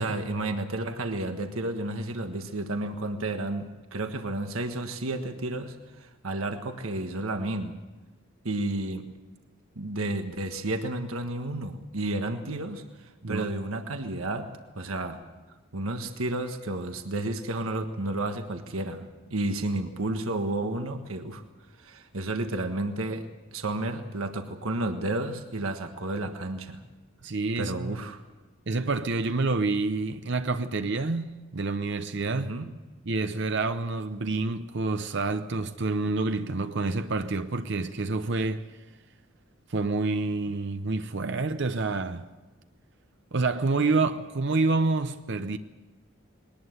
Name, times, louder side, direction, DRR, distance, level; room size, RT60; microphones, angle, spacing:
voice 1, 0.0-7.8 8.4-9.1 9.7-14.5 14.7-15.2 15.7-21.4 21.8-26.8 27.6-28.2 32.3-32.7, right 2 dB, 85° right, 1.5 m, -31 dB
voice 2, 27.2-28.0 28.7-32.5 33.1-38.7 39.7-42.3 43.3-45.6, right 3 dB, 60° right, 0.8 m, -28 dB
21.5 x 19.0 x 8.0 m
head